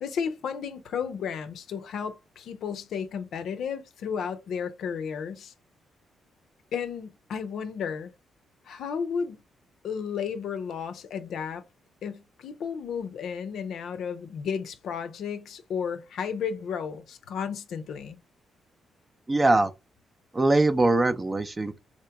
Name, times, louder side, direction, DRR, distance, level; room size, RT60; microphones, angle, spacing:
voice 1, 0.0-5.5 6.7-8.1 8.7-9.4 9.8-11.6 12.0-18.2, left 7 dB, 75° left, 0.5 m, -33 dB
voice 2, 19.3-19.7 20.3-21.8, right 2 dB, 20° right, 0.5 m, -22 dB
4.3 x 2.8 x 2.2 m
cardioid pair, 110°, 0 cm